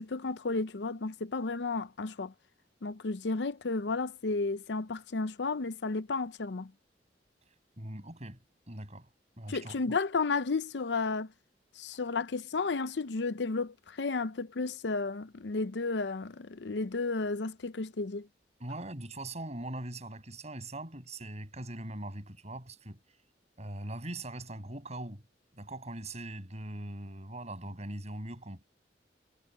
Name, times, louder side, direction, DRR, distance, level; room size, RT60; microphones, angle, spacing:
voice 1, 0.0-2.3 2.8-6.7 9.5-11.3 11.8-18.3, left 3 dB, 80° left, 0.7 m, -33 dB
voice 2, 7.8-8.4 8.7-9.1 9.4-9.8 18.6-23.0 23.6-25.2 25.5-28.6, right 1 dB, 40° right, 7.8 m, -41 dB
head